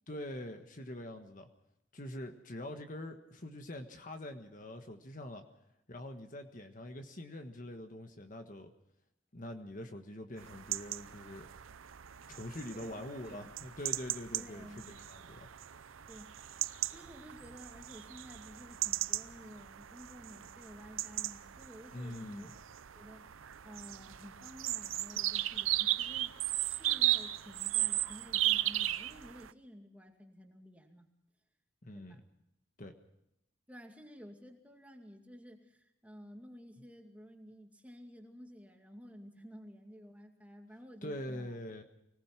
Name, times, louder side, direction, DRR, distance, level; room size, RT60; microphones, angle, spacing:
voice 1, 0.1-1.5 1.9-5.4 5.9-8.7 9.3-11.5 12.3-15.5 21.9-22.5 31.8-32.2 32.8-32.9 41.0-41.8, left 1 dB, 40° left, 6 dB, 1.5 m, -44 dB
sound 1, 10.4-29.5, right 14 dB, 85° right, 0.7 m, -36 dB
voice 2, 12.7-13.5 14.3-15.0 16.1-16.5 16.8-22.7 22.9-31.1 31.9-32.3 33.7-41.6, equal, 5° right, 3 dB, 2.3 m, -53 dB
24.5 x 18.5 x 6.0 m, 0.82 s
head